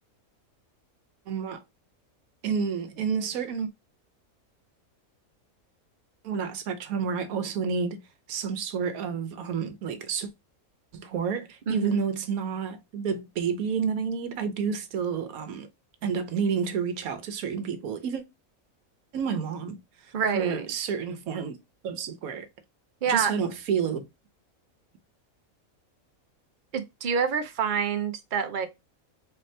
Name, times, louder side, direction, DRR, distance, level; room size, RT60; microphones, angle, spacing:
voice 1, 1.3-1.6 2.4-3.7 6.2-8.0 8.3-10.3 10.9-15.7 16.0-18.2 19.1-21.5 21.8-22.5 23.1-24.1, right 6 dB, 80° right, 1.2 m, -30 dB
voice 2, 11.7-12.0 20.1-20.7 23.0-23.3 26.7-28.7, right 6 dB, 50° right, 0.6 m, -27 dB
4.2 x 2.7 x 3.2 m
omnidirectional pair, 1.5 m